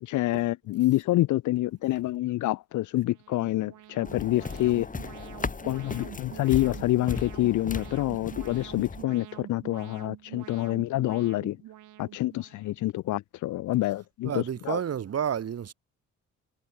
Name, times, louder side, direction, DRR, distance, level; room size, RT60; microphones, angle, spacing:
voice 1, 0.0-4.9 5.6-11.6 12.0-14.8, left 16 dB, 75° left, 0.7 m, -27 dB
Alarm, 3.0-12.9, right 13 dB, 80° right, 5.6 m, -46 dB
sound 1, 4.0-9.0, left 4 dB, 25° left, 2.5 m, -37 dB
voice 2, 14.2-15.7, right 8 dB, 55° right, 2.9 m, -30 dB
cardioid pair, 90°, 30 cm